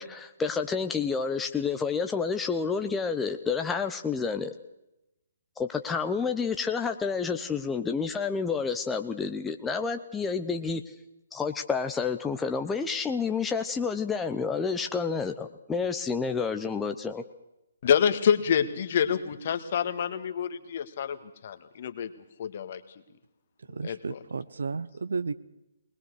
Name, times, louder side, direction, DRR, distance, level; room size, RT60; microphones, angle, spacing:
voice 1, 0.0-4.5 5.6-10.8 11.3-17.2, left 5 dB, 10° left, 0.8 m, -29 dB
voice 2, 17.8-21.2 21.4-22.1 22.4-22.8 23.8-24.2, left 8 dB, 45° left, 1.7 m, -27 dB
voice 3, 23.7-25.3, right 4 dB, 65° right, 0.9 m, -33 dB
21.0 x 20.5 x 6.5 m
figure-of-eight pair, 135°, 0 cm